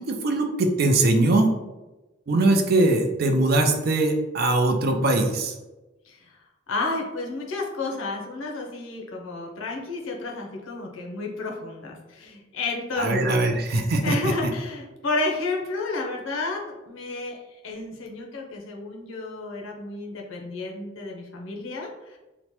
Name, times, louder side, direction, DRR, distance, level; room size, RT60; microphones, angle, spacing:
voice 1, 0.0-1.5 2.3-5.5 13.0-14.1, right 2 dB, 50° right, 4 dB, 0.4 m, -21 dB
voice 2, 6.0-6.4 6.7-13.5 14.0-22.2, left 3 dB, 85° left, 0 dB, 0.6 m, -31 dB
2.9 x 2.1 x 3.0 m, 1.1 s
head